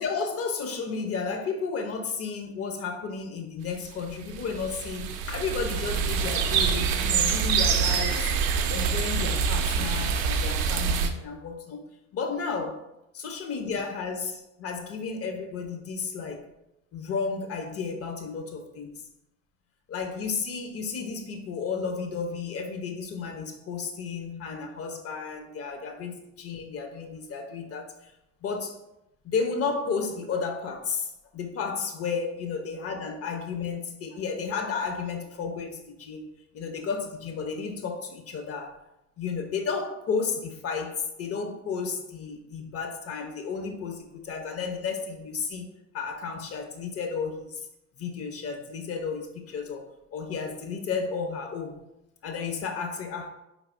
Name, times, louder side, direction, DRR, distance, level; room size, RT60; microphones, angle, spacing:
voice 1, 0.0-8.3 8.7-11.8 12.1-12.8 13.1-16.4 16.9-19.0 19.9-28.1 28.4-28.8 29.2-36.2 36.5-38.8 39.2-45.7 45.9-47.7 48.0-51.8 52.2-53.3, left 5 dB, 35° left, 0.7 m, -33 dB
sound 1, 4.0-11.1, right 6 dB, 55° right, 0.5 m, -26 dB
4.5 x 3.4 x 2.5 m
figure-of-eight pair, 55°, 40 cm